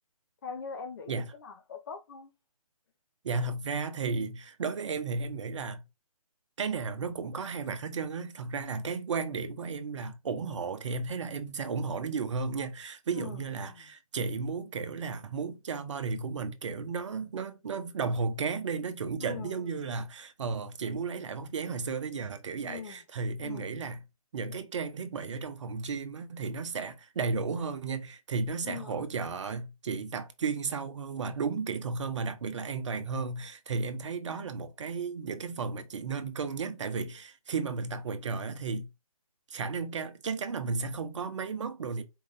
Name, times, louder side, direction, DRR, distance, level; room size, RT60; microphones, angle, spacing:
voice 1, 0.4-2.3 13.1-13.9 19.2-19.7 22.6-23.0 23.4-23.8 28.6-29.1, left 6 dB, 35° left, 0.7 m, -42 dB
voice 2, 3.2-5.8 6.6-24.0 24.3-38.9 39.5-42.0, right 4 dB, 50° right, 0.8 m, -34 dB
4.6 x 2.5 x 3.8 m
hypercardioid pair, 155°, 19 cm